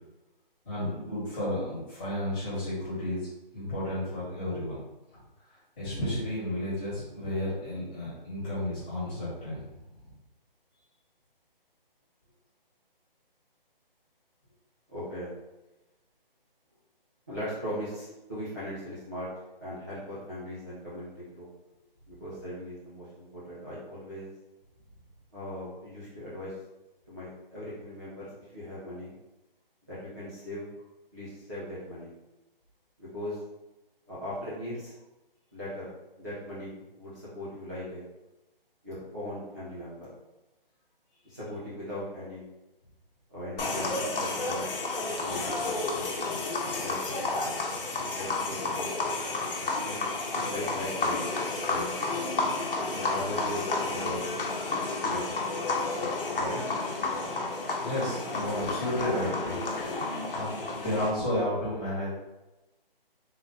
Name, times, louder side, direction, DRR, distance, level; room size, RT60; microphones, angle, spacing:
voice 1, 0.6-4.8 5.1-5.2 5.5-9.6 57.8-60.0 60.3-62.1, left 1 dB, 10° left, -15 dB, 1.2 m, -32 dB
voice 2, 14.9-15.3 17.3-19.3 19.6-21.5 22.1-24.3 25.3-26.5 27.1-29.1 29.9-30.7 31.1-32.1 33.0-33.4 34.1-34.9 35.5-35.9 36.2-38.1 38.8-40.1 41.2-42.5 43.3-44.7 45.1-47.5 47.9-48.9 49.6-51.3 51.7-51.8 52.9-54.3 55.0-55.4 56.0-56.6, left 1 dB, 20° right, -13 dB, 0.6 m, -39 dB
sound 1, 43.6-61.1, left 3 dB, 70° left, 0.9 m, -31 dB
3.8 x 2.6 x 3.4 m, 1.0 s
hypercardioid pair, 180°, 29 cm